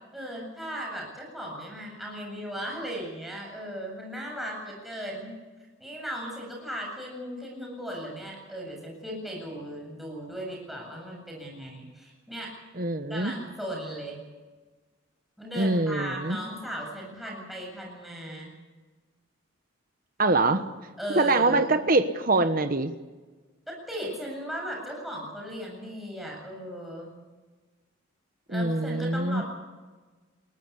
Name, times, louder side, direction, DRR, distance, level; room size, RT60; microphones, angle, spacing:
voice 1, 0.1-5.4 5.8-12.5 13.1-14.2 15.4-18.5 21.0-21.8 23.7-27.1 28.5-29.4, equal, ahead, -1 dB, 8.0 m, -37 dB
voice 2, 12.8-13.3 15.6-16.4 20.2-20.6 21.2-22.9 28.5-29.4, right 2 dB, 45° right, 9 dB, 1.2 m, -24 dB
22.0 x 19.0 x 8.5 m, 1.3 s
head